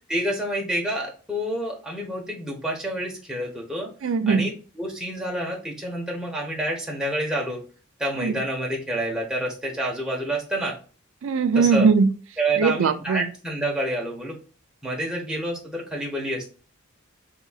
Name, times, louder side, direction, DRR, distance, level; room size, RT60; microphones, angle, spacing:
voice 1, 0.1-3.9 4.3-7.6 8.0-10.8 11.5-11.9 12.4-14.4 14.8-16.5, right 1 dB, 5° right, 1.0 m, -28 dB
voice 2, 4.0-4.5 8.2-8.3 11.2-12.1 12.6-13.3, right 5 dB, 65° right, 0.4 m, -20 dB
5.0 x 3.6 x 2.3 m
head